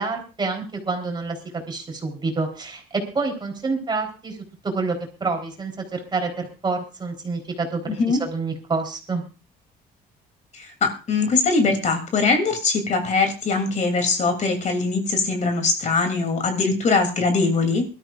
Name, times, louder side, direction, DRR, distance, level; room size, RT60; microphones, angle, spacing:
voice 1, 0.0-9.2, right 3 dB, 25° right, 3 dB, 3.8 m, -28 dB
voice 2, 7.9-8.2 10.5-17.8, left 4 dB, 45° left, 5 dB, 2.9 m, -22 dB
22.5 x 13.0 x 2.5 m, 0.32 s
cardioid pair, 110°, 17 cm